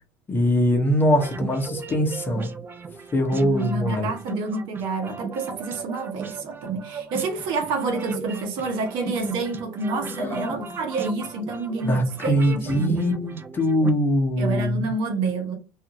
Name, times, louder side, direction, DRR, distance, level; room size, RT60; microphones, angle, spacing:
voice 1, 0.3-2.5 3.1-4.1 10.2-10.7 11.8-14.9, equal, 25° left, 0.8 m, -22 dB
sound 1, 1.1-13.9, right 5 dB, 25° right, 0.4 m, -37 dB
voice 2, 3.4-12.0 12.2-13.2 14.4-15.6, right 3 dB, 65° right, 0.8 m, -28 dB
2.5 x 2.4 x 2.9 m
supercardioid pair, 110°, 9 cm